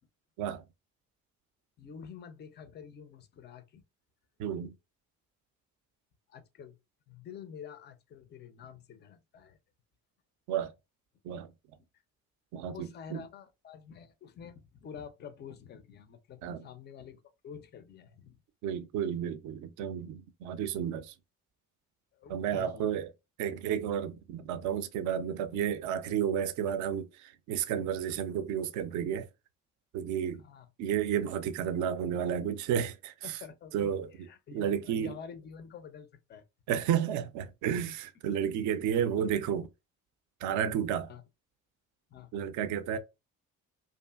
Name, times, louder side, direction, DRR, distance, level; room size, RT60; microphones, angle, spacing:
voice 1, 1.8-3.8 6.3-6.8 7.1-9.6 12.7-18.4 22.1-22.9 30.4-30.7 33.2-36.4 39.2-39.3 39.5-39.6 41.1-41.2 42.1-42.6, left 7 dB, 25° left, 0.4 m, -48 dB
voice 2, 4.4-4.7 10.5-10.7 11.2-11.5 12.5-13.2 16.4-16.7 18.6-21.1 22.3-23.1 23.4-29.3 29.9-30.4 30.8-33.4 33.7-34.3 34.5-35.1 36.7-39.7 40.4-41.1 42.3-43.0, right 9 dB, 45° right, 0.5 m, -32 dB
2.5 x 2.4 x 2.2 m
figure-of-eight pair, 45°, 43 cm